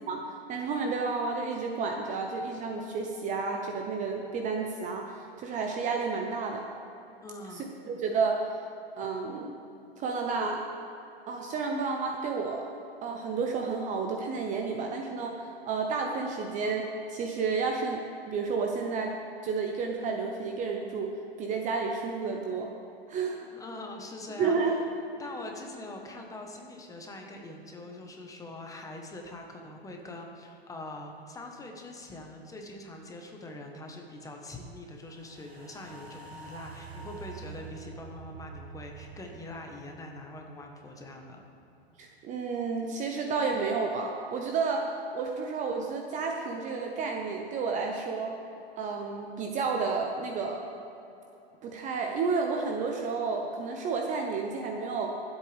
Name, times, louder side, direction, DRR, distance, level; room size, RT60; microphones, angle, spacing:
voice 1, 0.5-6.6 7.5-8.4 9.0-9.5 10.0-10.6 11.3-12.7 13.0-22.7 23.1-23.4 24.4-24.8 42.0-48.4 48.8-50.6 51.6-55.1, right 4 dB, 25° right, 2 dB, 0.8 m, -31 dB
voice 2, 7.2-7.7 23.5-24.7 25.2-41.4, left 2 dB, 10° left, 2 dB, 1.2 m, -43 dB
sound 1, 35.0-41.4 41.8-41.9, right 4 dB, 75° right, 1.7 m, -47 dB
23.5 x 8.1 x 3.5 m, 2.9 s
hypercardioid pair, 135°, 32 cm